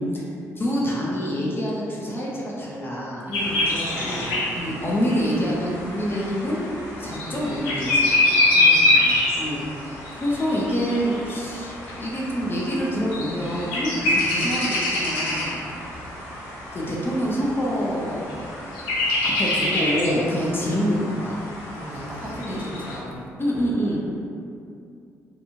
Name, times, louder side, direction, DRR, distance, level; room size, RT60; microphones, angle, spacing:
voice 1, 0.6-3.3 4.0-4.2 4.5-6.6 7.0-8.1 9.3-9.6 10.1-15.7 16.7-18.5 19.2-21.4 22.5-22.6 23.4-24.0, equal, 30° left, -5 dB, 0.5 m, -26 dB
voice 2, 3.2-4.8 8.5-9.1 21.7-23.2 23.6-24.0, equal, 25° right, -5 dB, 0.8 m, -35 dB
sound 1, 3.3-23.0, left 2 dB, 75° left, 0.5 m, -26 dB
2.8 x 2.5 x 2.4 m, 2.5 s
figure-of-eight pair, 40°, 8 cm